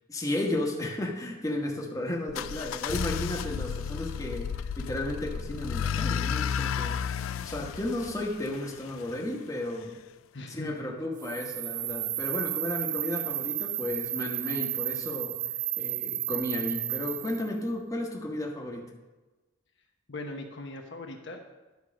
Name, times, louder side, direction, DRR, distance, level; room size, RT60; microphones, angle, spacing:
voice 1, 0.1-7.0 7.4-10.0 10.5-15.4 15.8-18.9, left 1 dB, 15° left, 0 dB, 1.2 m, -33 dB
sound 1, 2.3-9.2, left 7 dB, 85° left, 0.4 m, -32 dB
voice 2, 10.3-11.0 20.1-21.5, left 2 dB, 60° left, 3 dB, 0.9 m, -40 dB
sound 2, 11.2-17.5, right 13 dB, 40° right, 0.3 m, -32 dB
10.5 x 4.7 x 6.1 m, 1.2 s
head